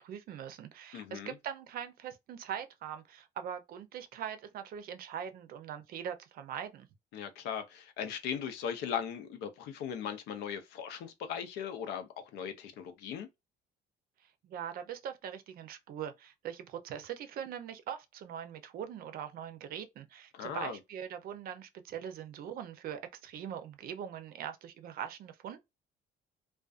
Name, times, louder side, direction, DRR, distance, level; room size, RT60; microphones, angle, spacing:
voice 1, 0.0-6.9 14.2-25.6, right 9 dB, 60° right, 0.5 m, -42 dB
voice 2, 0.9-1.3 7.1-13.3 20.3-20.8, left 8 dB, 80° left, 0.5 m, -38 dB
2.4 x 2.2 x 2.3 m
cardioid pair, 110°, 17 cm